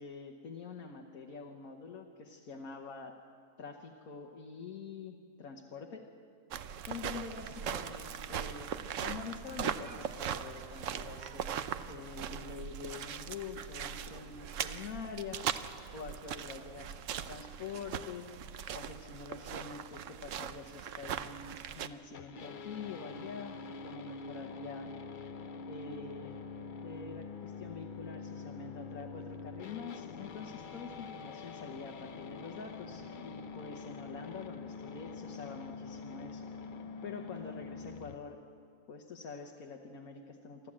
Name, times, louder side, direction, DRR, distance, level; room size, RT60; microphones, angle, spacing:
voice 1, 0.0-3.2 3.6-6.0 6.9-15.4 15.9-18.2 18.7-24.9 25.7-26.4 26.8-36.4 37.0-38.4 38.9-40.7, left 5 dB, 80° left, 1 dB, 1.6 m, -46 dB
sound 1, 6.5-21.9, right 8 dB, 65° right, 1.0 m, -40 dB
sound 2, 22.1-38.1, left 4 dB, 50° left, 0.7 m, -45 dB
27.0 x 12.5 x 8.7 m, 2.3 s
omnidirectional pair, 1.5 m